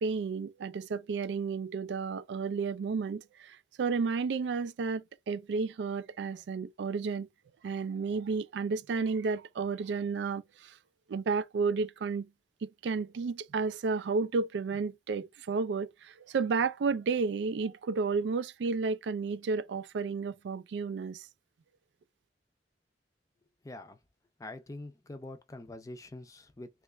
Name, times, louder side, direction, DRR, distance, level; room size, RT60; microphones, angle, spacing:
voice 1, 0.0-7.3 7.6-10.8 11.1-12.3 12.6-21.3, right 4 dB, 75° right, 0.3 m, -32 dB
voice 2, 23.6-24.0 24.4-26.7, left 2 dB, 20° left, 0.5 m, -44 dB
3.1 x 2.4 x 3.1 m
head